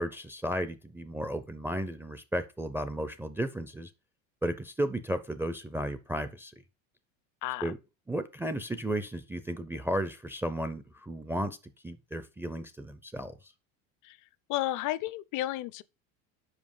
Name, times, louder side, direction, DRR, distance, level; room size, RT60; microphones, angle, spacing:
voice 1, 0.0-3.9 4.4-6.5 7.6-7.8 8.1-11.6 11.8-13.5, right 1 dB, 5° right, 0.4 m, -34 dB
voice 2, 14.5-15.8, left 15 dB, 55° left, 0.5 m, -32 dB
5.3 x 5.1 x 5.3 m
supercardioid pair, 110°, 38 cm